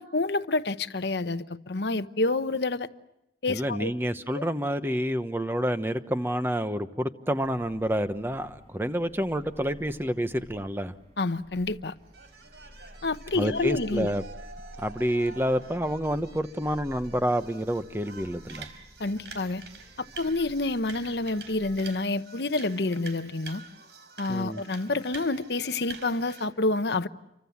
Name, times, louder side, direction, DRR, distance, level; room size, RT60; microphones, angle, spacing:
voice 1, 0.0-2.9 3.4-3.9 4.3-4.4 11.2-12.0 13.0-14.1 19.0-19.6 20.0-23.6 24.2-27.1, left 2 dB, 75° left, 1.0 m, -28 dB
voice 2, 3.5-10.9 13.4-14.2 14.8-18.7 24.3-24.6, equal, 15° right, 1.1 m, -28 dB
sound 1, 7.4-21.8, equal, 40° right, 5.0 m, -50 dB
sound 2, 12.1-26.5, right 4 dB, 85° right, 4.0 m, -47 dB
29.5 x 25.0 x 7.2 m
head